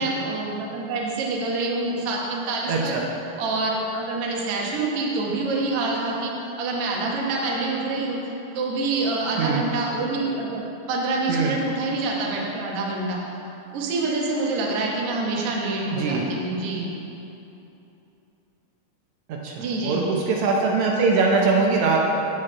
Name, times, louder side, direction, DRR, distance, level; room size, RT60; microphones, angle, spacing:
voice 1, 0.0-3.0 3.4-6.3 6.6-8.2 8.6-13.2 13.7-16.9 19.6-20.0, right 3 dB, 60° right, -2 dB, 1.9 m, -26 dB
voice 2, 2.7-3.0 9.4-9.6 11.3-11.5 15.9-16.2 19.3-22.1, right 4 dB, 75° right, -2 dB, 2.1 m, -22 dB
8.8 x 8.1 x 4.4 m, 2.9 s
omnidirectional pair, 3.4 m